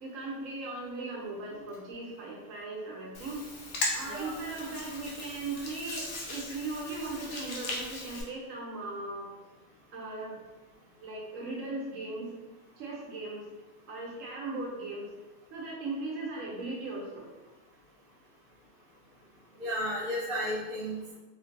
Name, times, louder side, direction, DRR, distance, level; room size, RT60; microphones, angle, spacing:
voice 1, 0.0-3.4 3.9-9.3 9.9-10.4 11.0-12.3 12.8-13.5 13.9-15.1 15.5-17.2, right 2 dB, 70° right, -2 dB, 1.0 m, -38 dB
Hands, 3.1-8.2, left 2 dB, 80° left, 1.1 m, -38 dB
voice 2, 4.1-4.4 19.6-21.2, equal, 50° right, -5 dB, 0.8 m, -33 dB
3.1 x 2.5 x 2.5 m, 1.1 s
omnidirectional pair, 1.5 m